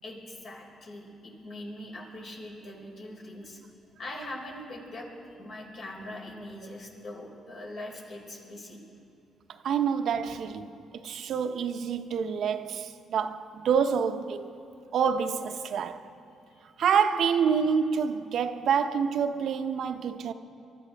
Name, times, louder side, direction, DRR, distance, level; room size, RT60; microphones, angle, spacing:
voice 1, 0.0-3.6 4.0-8.8 16.5-16.6, left 1 dB, 60° left, 3.9 m, -42 dB
voice 2, 9.5-14.5 14.9-16.1 16.8-20.3, right 6 dB, 70° right, 0.7 m, -27 dB
23.5 x 13.0 x 3.4 m
cardioid pair, 90°, 0 cm